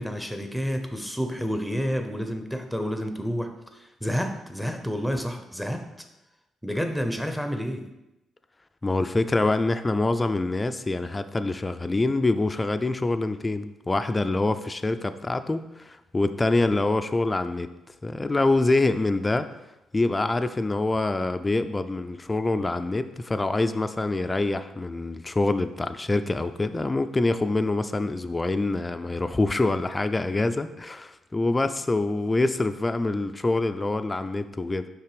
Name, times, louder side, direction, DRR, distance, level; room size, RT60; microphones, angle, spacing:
voice 1, 0.0-6.1 6.6-7.9, equal, ahead, 6 dB, 0.8 m, -30 dB
voice 2, 8.8-17.7 18.0-19.5 19.9-34.9, left 2 dB, 20° left, 9 dB, 0.4 m, -25 dB
5.7 x 3.4 x 5.0 m, 0.93 s
cardioid pair, 75°, 0 cm